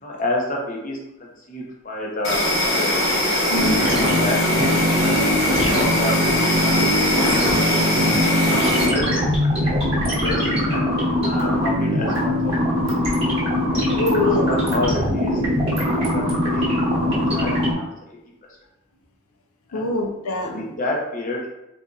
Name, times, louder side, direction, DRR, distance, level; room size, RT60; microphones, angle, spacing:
voice 1, 0.0-3.0 3.6-4.7 5.0-5.2 5.5-6.9 8.5-9.7 10.0-10.8 11.2-12.9 13.9-15.4 15.9-17.0 17.3-17.9 19.7-19.9 20.4-21.5, left 1 dB, 35° left, -2 dB, 0.7 m, -29 dB
Insect, 2.2-8.9, left 1 dB, 65° left, 1.3 m, -21 dB
voice 2, 3.5-3.9 7.5-8.1 13.8-14.5 19.7-20.7, left 2 dB, 90° left, 1 dB, 0.6 m, -25 dB
sound 1, 3.6-17.7, equal, 25° right, 1.2 m, -22 dB
4.1 x 2.6 x 2.4 m, 0.91 s
head